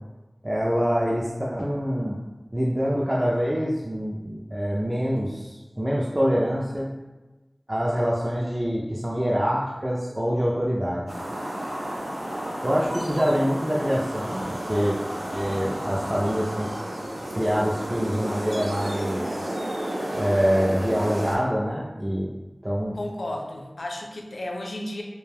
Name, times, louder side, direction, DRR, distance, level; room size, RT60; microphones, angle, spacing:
voice 1, 0.4-2.2 2.5-6.9 7.7-11.2 12.6-15.0 15.3-16.7 17.3-19.6 20.1-22.3 22.6-23.0, equal, 25° right, -4 dB, 0.3 m, -25 dB
sound 1, 11.1-21.4, right 1 dB, 90° right, 0.5 m, -31 dB
voice 2, 22.9-25.0, left 1 dB, 85° left, 1 dB, 0.4 m, -33 dB
2.4 x 2.2 x 3.2 m, 1.1 s
wide cardioid pair, 40°, 0 cm